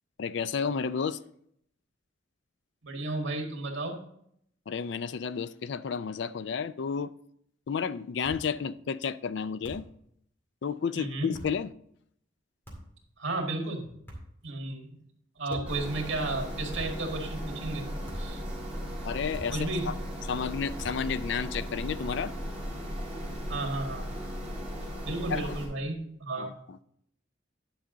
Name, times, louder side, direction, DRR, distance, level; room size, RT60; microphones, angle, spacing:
voice 1, 0.2-1.2 4.7-7.1 7.7-9.9 10.6-11.7 15.5-15.7 19.0-19.9 20.3-22.3 25.3-25.4 26.4-26.8, left 6 dB, 65° left, 0.4 m, -32 dB
voice 2, 2.8-4.0 10.9-11.3 13.2-13.9 14.4-15.0 15.4-17.8 18.2-18.4 19.5-19.9 23.5-24.1 25.0-26.5, right 2 dB, 80° right, 1.8 m, -33 dB
sound 1, 8.2-8.5 9.6-10.0 11.3-11.6 12.6-13.0 14.0-14.5 15.5-15.8 16.7-17.1 18.0-18.4 19.3-19.7 20.8-21.1, equal, 10° left, 2.2 m, -46 dB
sound 2, 15.7-25.7, equal, 5° right, 2.9 m, -37 dB
10.0 x 5.7 x 3.8 m
head